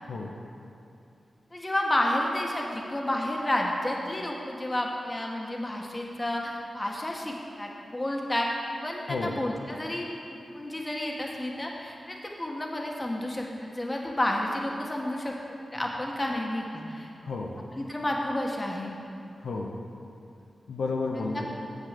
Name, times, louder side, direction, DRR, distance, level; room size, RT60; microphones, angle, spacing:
voice 1, 1.5-15.3 15.7-17.1 17.7-18.9 21.3-21.4, left 1 dB, 25° left, -1 dB, 1.6 m, -31 dB
voice 2, 9.1-9.4 17.2-17.5 19.4-19.8 20.7-21.5, left 3 dB, 85° left, -1 dB, 0.8 m, -31 dB
7.4 x 6.5 x 6.8 m, 2.7 s
cardioid pair, 45°, 0 cm